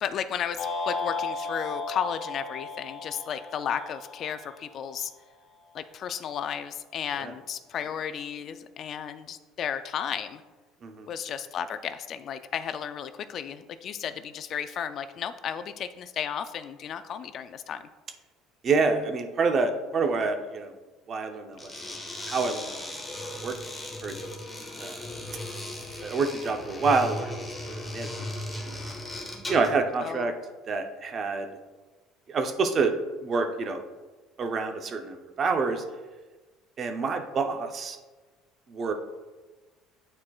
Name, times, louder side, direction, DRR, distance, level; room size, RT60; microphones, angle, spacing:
voice 1, 0.0-5.1 5.7-10.4 11.1-17.9 30.0-30.3, left 8 dB, 45° left, 11 dB, 0.3 m, -34 dB
sound 1, 0.6-4.9, left 3 dB, 65° left, 1.8 m, -35 dB
voice 2, 18.6-20.7 21.1-21.7 22.3-22.9 23.4-23.5 24.0-24.2 24.8-25.1 26.0-28.1 28.6-28.7 29.5-30.3 30.7-31.5 32.3-32.9 33.2-33.8 34.4-35.8 36.8-38.0 38.7-38.9, right 4 dB, 35° right, 6 dB, 0.7 m, -27 dB
sound 2, 21.5-29.8, left 1 dB, 10° left, 1.2 m, -37 dB
9.6 x 4.4 x 2.4 m, 1.3 s
cardioid pair, 130°, 0 cm